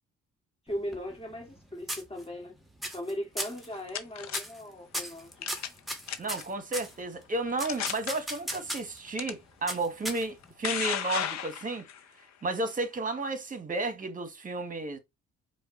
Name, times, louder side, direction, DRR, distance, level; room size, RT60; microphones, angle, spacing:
voice 1, 0.7-2.5 2.9-5.5, equal, 20° left, 2.1 m, -38 dB
sound 1, 0.7-1.6 1.9-2.5 2.8-3.1 3.4-3.7 4.3-4.6 4.9-6.9 7.6-9.0 9.7-10.5, equal, ahead, 1.2 m, -36 dB
sound 2, 3.5-4.4 5.4-5.8 6.1-6.4 7.1-7.2 7.6-8.1 9.2-9.3 10.2-12.0, left 10 dB, 65° left, 0.7 m, -33 dB
voice 2, 6.2-11.8 12.4-15.0, right 2 dB, 25° right, 1.2 m, -32 dB
4.9 x 2.4 x 4.0 m
cardioid pair, 90°, 30 cm